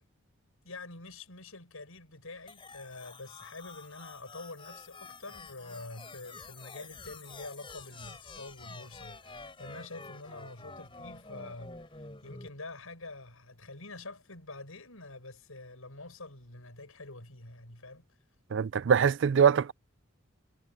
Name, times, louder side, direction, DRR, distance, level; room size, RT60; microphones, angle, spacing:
voice 1, 0.6-18.1, left 2 dB, 85° left, 6.5 m, -46 dB
sound 1, 2.5-12.5, left 3 dB, 25° left, 4.1 m, -48 dB
voice 2, 18.5-19.7, right 7 dB, 60° right, 0.4 m, -23 dB
head